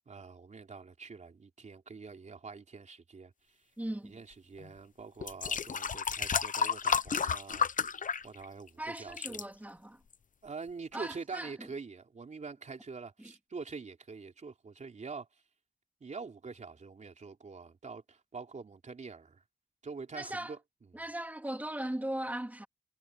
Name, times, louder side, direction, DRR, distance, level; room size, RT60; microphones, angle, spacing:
voice 1, 0.1-3.3 4.1-7.7 8.2-9.5 10.4-15.3 16.0-19.4 19.8-20.6 20.9-21.0, right 4 dB, 45° right, 3.5 m, -45 dB
voice 2, 3.8-4.2 8.8-10.0 10.9-11.7 13.2-13.3 20.1-20.5 20.9-22.7, right 1 dB, 10° right, 2.5 m, -38 dB
sound 1, 4.6-4.7 5.2-8.7 9.0-9.4 10.1-10.2, left 6 dB, 50° left, 0.8 m, -32 dB
wide cardioid pair, 135°, 18 cm